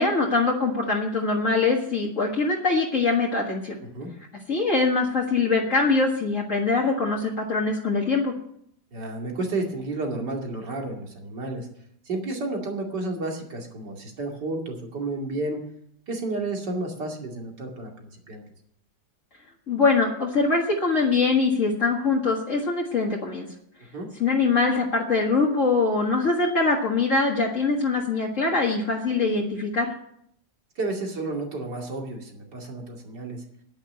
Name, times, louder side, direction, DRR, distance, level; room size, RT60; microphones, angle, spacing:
voice 1, 0.0-3.8 4.5-8.3 19.7-23.5 24.2-29.9, left 3 dB, 50° left, -2 dB, 2.1 m, -23 dB
voice 2, 8.9-11.7 12.1-15.6 16.1-18.4 23.9-24.1 30.8-33.4, right 2 dB, 90° right, 1 dB, 3.1 m, -31 dB
10.5 x 10.0 x 8.2 m, 0.71 s
omnidirectional pair, 1.8 m